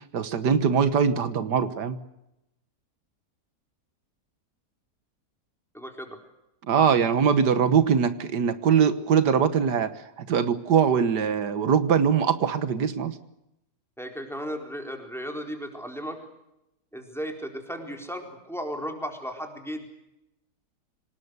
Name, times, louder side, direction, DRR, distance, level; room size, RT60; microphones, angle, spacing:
voice 1, 0.0-2.0 6.7-9.9 10.2-13.2, right 7 dB, 85° right, 12 dB, 1.8 m, -22 dB
voice 2, 5.7-6.2 14.0-16.2 16.9-19.9, equal, ahead, 3 dB, 4.2 m, -35 dB
26.0 x 19.0 x 8.1 m, 0.87 s
omnidirectional pair, 1.7 m